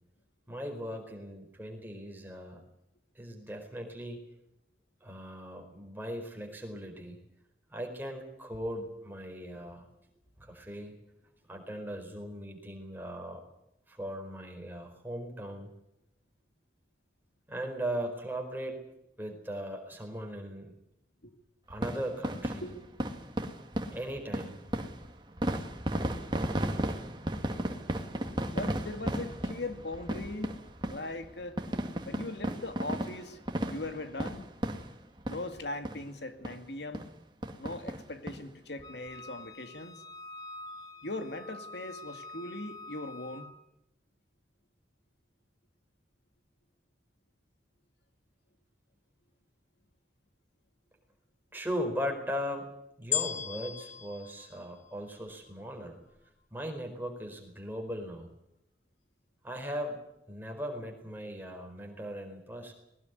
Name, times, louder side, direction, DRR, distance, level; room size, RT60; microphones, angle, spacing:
voice 1, 0.5-2.6 3.1-4.2 5.0-7.2 7.7-9.8 10.4-11.0 11.5-13.4 13.9-15.7 17.5-18.8 19.2-20.7 21.7-22.7 23.7-24.6 28.2-28.4 51.5-52.7 53.0-56.0 56.5-58.3 59.4-60.0 60.3-62.7, equal, 10° right, 3 dB, 4.6 m, -38 dB
sound 1, 21.7-35.6 35.9-36.0 36.4-36.6 36.9-37.1 37.4-38.4 38.8-38.9 39.1-39.2, right 1 dB, 25° right, 2.1 m, -35 dB
voice 2, 28.5-30.6 30.8-31.6 32.0-33.4 33.7-34.5 35.3-37.1 37.6-40.0 41.0-43.5, left 2 dB, 75° left, 8 dB, 2.3 m, -39 dB
Wind instrument woodwind instrument, 38.8-43.5, left 2 dB, 25° left, 2.3 m, -47 dB
sound 2, 53.1-55.5 56.1-56.2, left 10 dB, 45° left, 1.5 m, -36 dB
20.5 x 18.5 x 9.5 m, 0.84 s
head